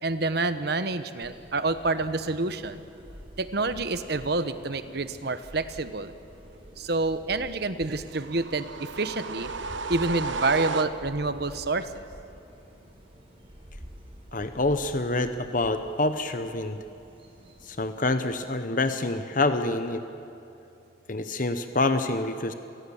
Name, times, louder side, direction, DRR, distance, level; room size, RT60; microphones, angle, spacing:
voice 1, 0.0-2.8 3.4-6.1 6.8-9.5 9.9-12.0, right 3 dB, 55° right, 11 dB, 1.1 m, -28 dB
sound 1, 1.2-18.5, equal, 30° right, 4.9 m, -48 dB
sound 2, 8.1-11.3, right 4 dB, 75° right, 0.9 m, -33 dB
voice 2, 14.3-16.8 17.6-20.0 21.1-22.5, left 2 dB, 45° left, 9 dB, 0.9 m, -27 dB
28.0 x 19.5 x 7.1 m, 2.9 s
head